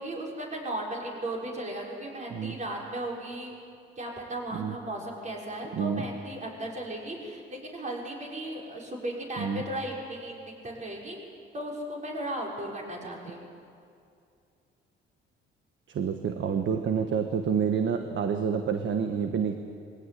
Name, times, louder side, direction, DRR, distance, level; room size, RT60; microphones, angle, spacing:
voice 1, 0.0-3.5 4.0-11.2 11.5-13.5, right 1 dB, 35° right, -2 dB, 5.9 m, -36 dB
voice 2, 5.7-6.0 9.4-9.6 15.9-19.6, right 7 dB, 65° right, 6 dB, 1.5 m, -28 dB
22.5 x 16.5 x 9.5 m, 2.4 s
cardioid pair, 100°, 21 cm